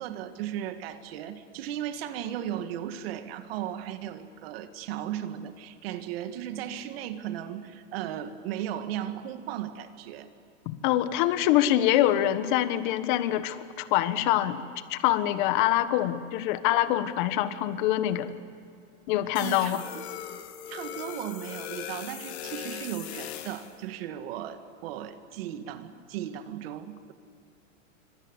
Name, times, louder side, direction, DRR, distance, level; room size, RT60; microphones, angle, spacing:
voice 1, 0.0-10.3 19.4-19.8 20.7-27.1, right 10 dB, 50° right, 9 dB, 2.0 m, -36 dB
voice 2, 10.6-14.6 14.9-18.3 19.1-19.8, left 13 dB, 40° left, 12 dB, 1.4 m, -25 dB
sound 1, 19.4-23.7, left 10 dB, 55° left, 2.3 m, -39 dB
25.5 x 25.5 x 8.2 m, 2.4 s
supercardioid pair, 165°, 38 cm